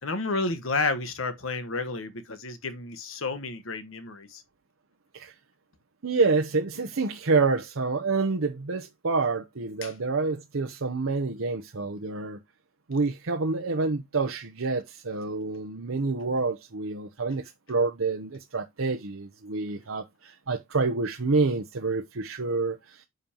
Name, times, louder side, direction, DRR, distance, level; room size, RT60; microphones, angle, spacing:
voice 1, 0.0-4.4 9.8-9.9, left 3 dB, 80° left, 1.3 m, -31 dB
voice 2, 6.0-12.4 12.9-23.0, right 3 dB, 85° right, 0.9 m, -28 dB
9.2 x 5.3 x 2.9 m
head